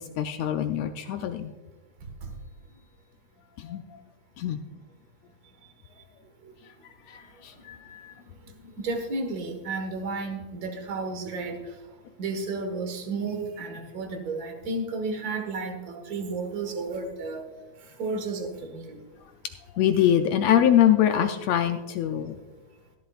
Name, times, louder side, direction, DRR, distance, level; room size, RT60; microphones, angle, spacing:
voice 1, 0.2-1.5 3.6-4.0 4.4-4.6 7.1-8.1 19.7-22.4, left 10 dB, 85° left, 7 dB, 1.5 m, -24 dB
voice 2, 8.8-11.5 12.2-17.4 18.0-18.5 18.7-18.9, right 3 dB, 45° right, 5 dB, 1.3 m, -32 dB
17.0 x 11.0 x 2.4 m, 1.3 s
omnidirectional pair, 3.6 m